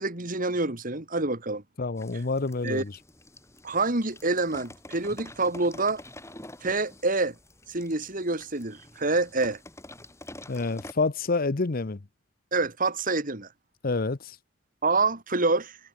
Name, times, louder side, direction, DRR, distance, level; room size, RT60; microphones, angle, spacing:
voice 1, 0.0-1.6 2.6-2.8 3.6-6.0 6.6-7.3 7.7-9.6 12.5-13.5 14.8-15.8, right 3 dB, 40° right, 2.9 m, -27 dB
voice 2, 1.8-3.0 10.5-12.0 13.8-14.4, left 3 dB, 45° left, 0.8 m, -28 dB
sound 1, 2.0-10.9, left 1 dB, 15° left, 6.5 m, -47 dB
head